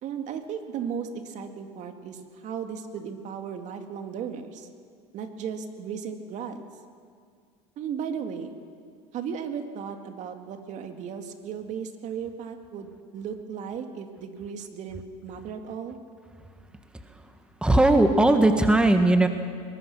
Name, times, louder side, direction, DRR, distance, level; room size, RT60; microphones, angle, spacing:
voice 1, 0.0-4.7 5.1-6.6 7.8-8.6 9.1-16.0, right 7 dB, 50° right, 6 dB, 2.3 m, -35 dB
voice 2, 17.6-19.3, right 2 dB, 5° right, 6 dB, 1.5 m, -18 dB
22.0 x 20.0 x 6.2 m, 2.1 s
supercardioid pair, 105°, 16 cm